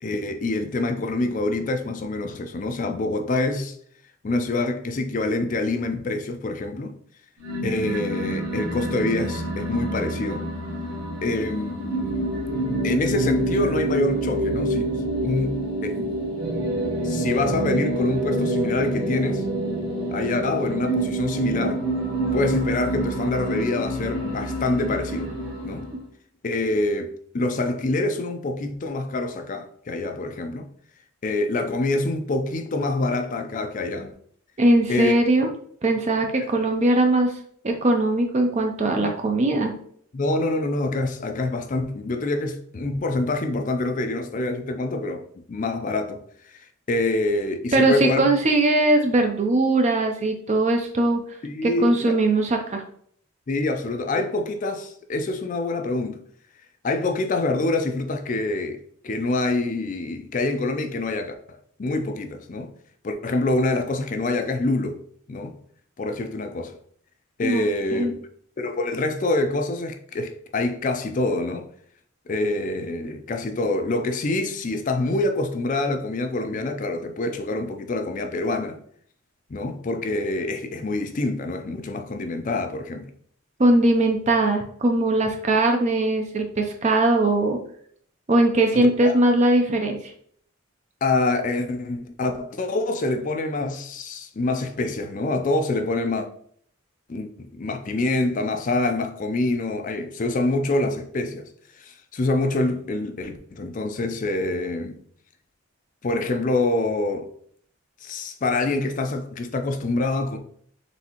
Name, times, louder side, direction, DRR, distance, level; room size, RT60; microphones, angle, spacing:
voice 1, 0.0-3.8 4.2-6.9 7.6-10.4 11.2-12.3 12.8-14.9 15.2-16.2 17.0-19.5 20.1-21.8 22.3-25.3 25.6-25.9 26.4-30.7 31.2-34.1 34.9-35.1 36.4-36.5 39.0-39.2 40.1-45.2 45.5-46.6 46.9-48.3 51.4-52.3 53.5-56.2 56.8-58.8 59.0-62.7 63.0-65.0 65.3-65.6 66.0-66.7 67.4-68.2 68.6-71.7 72.3-78.8 79.5-83.1 88.7-89.2 91.0-96.3 97.1-101.5 101.8-105.0 106.0-107.3 108.0-110.4, left 2 dB, 40° left, 0.4 m, -26 dB
sound 1, 7.4-26.0, right 1 dB, 70° right, 1.3 m, -27 dB
voice 2, 34.6-35.5 35.8-37.3 37.6-39.7 47.7-51.2 51.6-52.8 67.4-67.6 67.9-68.1 83.6-87.6 88.3-90.0, right 2 dB, 30° right, 0.4 m, -20 dB
4.1 x 3.5 x 2.9 m
head